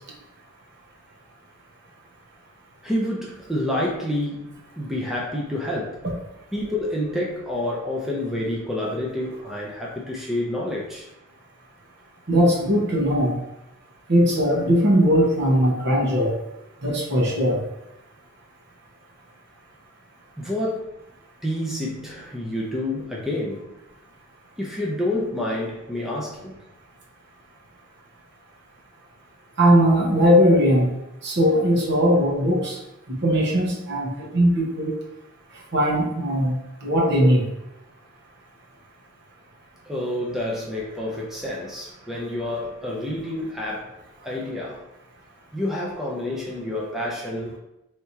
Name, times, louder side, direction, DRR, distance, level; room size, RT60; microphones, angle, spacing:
voice 1, 2.8-6.0 6.5-11.0 20.4-20.9 21.4-23.7 24.6-26.6 39.9-43.9 44.2-44.9 45.5-47.6, left 1 dB, ahead, -4 dB, 0.6 m, -28 dB
voice 2, 12.3-13.4 14.1-16.3 16.8-17.6 29.6-30.9 31.2-32.8 33.1-34.9 35.7-36.5 36.8-37.5, equal, 55° right, -2 dB, 1.0 m, -19 dB
3.4 x 2.8 x 4.5 m, 0.89 s
head